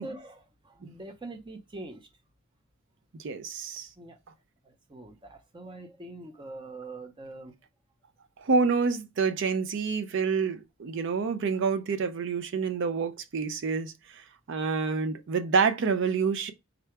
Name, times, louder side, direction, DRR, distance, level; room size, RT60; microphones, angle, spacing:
voice 1, 0.0-2.1 4.0-4.2 4.6-7.5, right 2 dB, 25° right, 0.6 m, -43 dB
voice 2, 3.1-3.9 8.4-16.5, right 5 dB, 60° right, 0.4 m, -28 dB
3.8 x 2.2 x 4.4 m
head